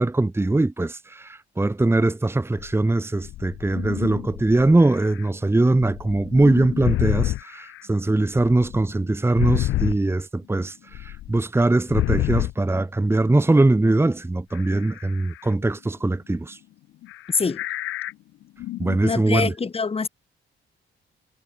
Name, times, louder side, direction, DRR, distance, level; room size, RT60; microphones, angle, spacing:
voice 1, 0.0-16.6 18.8-19.5, right 2 dB, 10° right, 1.4 m, -21 dB
sound 1, 2.6-2.7 3.2-5.3 5.8-7.8 8.4-10.0 10.9-11.4 11.9-12.5 13.3-13.4 14.5-15.5 17.0-18.1 18.4-19.0, left 15 dB, 85° left, 2.3 m, -28 dB
voice 2, 17.3-17.6 19.0-20.1, left 4 dB, 30° left, 2.0 m, -24 dB
cardioid pair, 90°, 20 cm